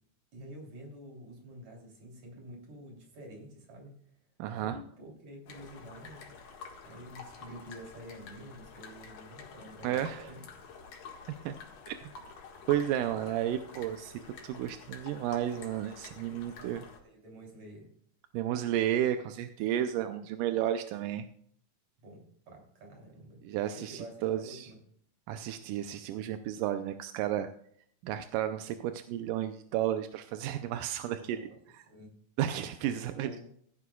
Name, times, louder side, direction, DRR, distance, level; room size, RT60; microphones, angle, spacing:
voice 1, 0.3-4.0 4.5-6.4 6.8-10.4 16.3-17.9 22.0-23.4 23.7-24.8 31.2-31.6 31.9-32.2 32.8-33.5, right 1 dB, 50° right, 0 dB, 4.4 m, -49 dB
voice 2, 4.4-4.8 9.8-10.2 11.5-11.6 11.9-12.0 12.7-14.1 14.4-16.8 18.3-21.3 23.4-24.7 25.3-27.5 28.0-31.8 32.4-33.3, right 11 dB, 80° right, 8 dB, 2.0 m, -32 dB
sound 1, 5.5-17.0, left 5 dB, 65° left, 3.3 m, -49 dB
15.5 x 11.0 x 2.3 m, 0.63 s
omnidirectional pair, 4.2 m